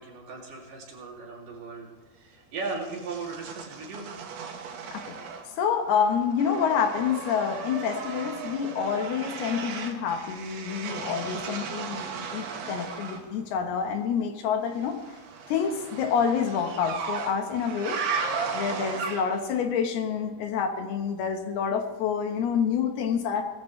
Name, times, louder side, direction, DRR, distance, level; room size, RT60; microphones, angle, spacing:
voice 1, 0.0-4.1, right 4 dB, 60° right, -2 dB, 4.3 m, -37 dB
sound 1, 2.6-5.7 6.0-13.3 14.8-19.5, right 5 dB, 80° right, 3.5 m, -36 dB
voice 2, 5.6-15.2 15.5-18.0 18.5-23.4, left 7 dB, 80° left, 5 dB, 3.2 m, -28 dB
18.5 x 14.5 x 3.3 m, 1.3 s
omnidirectional pair, 4.5 m